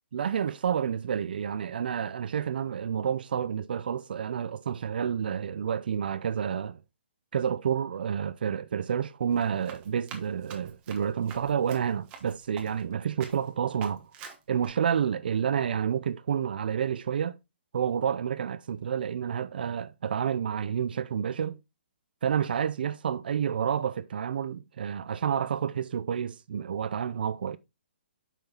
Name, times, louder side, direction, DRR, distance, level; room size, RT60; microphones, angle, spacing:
voice 1, 0.1-6.8 7.3-14.1 14.5-17.4 17.7-21.6 22.2-27.6, right 8 dB, 55° right, 0.5 m, -29 dB
Run, 9.3-12.9 13.2-13.5 13.8-14.7, right 6 dB, 15° right, 1.2 m, -47 dB
6.9 x 6.0 x 3.7 m
hypercardioid pair, 165°, 6 cm